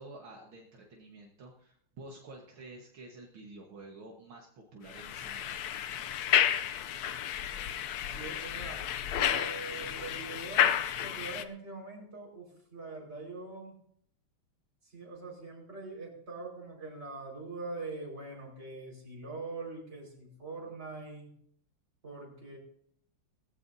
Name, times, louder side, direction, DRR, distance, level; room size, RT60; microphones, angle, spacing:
voice 1, 0.0-5.6, right 2 dB, 70° right, -1 dB, 2.3 m, -50 dB
sound 1, 4.9-11.4, left 10 dB, 75° left, 0.9 m, -31 dB
voice 2, 8.0-13.8 14.8-21.3 22.0-22.6, right 3 dB, 30° right, -3 dB, 5.2 m, -43 dB
19.0 x 15.5 x 2.7 m, 0.66 s
omnidirectional pair, 2.4 m